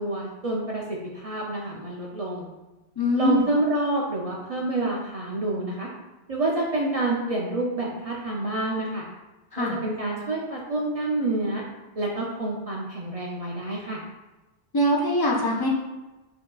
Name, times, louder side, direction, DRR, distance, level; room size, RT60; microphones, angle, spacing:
voice 1, 0.0-2.5 3.1-5.9 6.3-9.1 9.6-11.6 12.0-14.0, right 2 dB, 50° right, -2 dB, 0.4 m, -28 dB
voice 2, 3.0-3.4 9.5-9.8 14.7-15.7, left 1 dB, 35° left, -2 dB, 0.3 m, -22 dB
5.6 x 2.8 x 2.3 m, 1.1 s
omnidirectional pair, 1.1 m